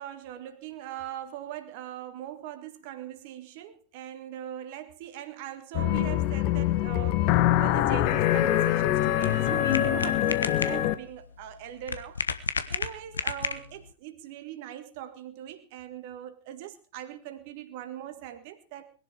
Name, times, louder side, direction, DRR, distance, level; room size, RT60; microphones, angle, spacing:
voice 1, 0.0-7.2 7.5-12.2 12.7-18.9, right 11 dB, 50° right, 1.7 m, -40 dB
sound 1, 5.7-10.9, left 13 dB, 45° left, 1.2 m, -24 dB
sound 2, 8.3-13.9, left 5 dB, 75° left, 1.1 m, -34 dB
20.5 x 11.5 x 4.8 m
figure-of-eight pair, 90°, 0 cm